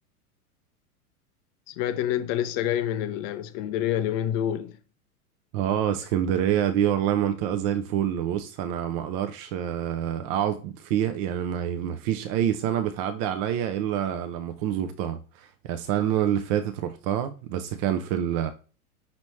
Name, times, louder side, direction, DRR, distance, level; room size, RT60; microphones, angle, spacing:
voice 1, 1.7-4.8, left 11 dB, 30° left, 0.4 m, -27 dB
voice 2, 5.5-18.5, right 10 dB, 40° right, 0.6 m, -27 dB
5.7 x 3.0 x 3.1 m
hypercardioid pair, 105°, 44 cm